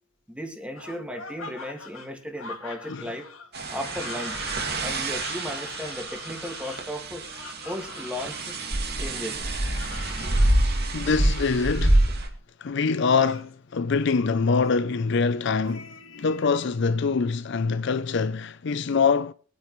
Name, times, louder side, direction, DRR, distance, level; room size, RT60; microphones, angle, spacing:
voice 1, 0.3-3.3 3.7-4.4 4.8-7.3 7.6-8.6 9.0-9.5, equal, 5° right, 2.0 m, -35 dB
sound 1, 0.8-8.6 9.6-10.5 11.2-12.0 12.8-13.5 14.2-14.7 15.6-16.8, left 4 dB, 90° left, 1.9 m, -43 dB
sound 2, 3.5-12.3, right 1 dB, 55° right, 2.2 m, -26 dB
voice 2, 10.9-12.0 12.6-19.3, left 5 dB, 60° left, 0.5 m, -24 dB
23.5 x 9.4 x 3.1 m
head